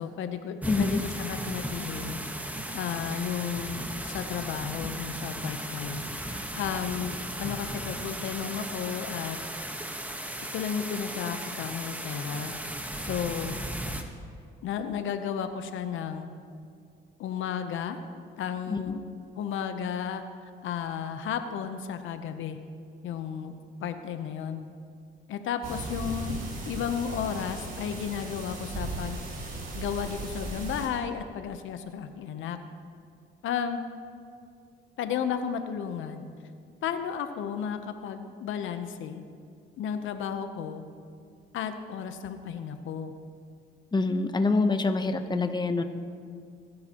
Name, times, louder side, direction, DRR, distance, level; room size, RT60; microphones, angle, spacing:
voice 1, 0.0-2.2 2.7-9.4 10.5-12.5 13.0-13.6 14.6-16.3 17.2-18.0 18.4-19.0 19.4-20.2 20.6-22.6 23.0-23.5 23.8-24.6 25.3-26.3 26.7-29.2 29.7-32.6 33.4-33.8 35.0-36.2 36.8-39.2 39.8-40.8 41.5-43.1, left 8 dB, 80° left, 8 dB, 0.8 m, -33 dB
sound 1, 0.6-14.0, right 1 dB, 5° right, 1.2 m, -36 dB
voice 2, 0.7-1.0 18.7-18.8 43.9-45.8, left 3 dB, 20° left, 7 dB, 0.9 m, -25 dB
sound 2, 25.6-30.9, right 2 dB, 50° right, 3.7 m, -37 dB
22.0 x 10.5 x 3.0 m, 2.4 s
cardioid pair, 90°, 20 cm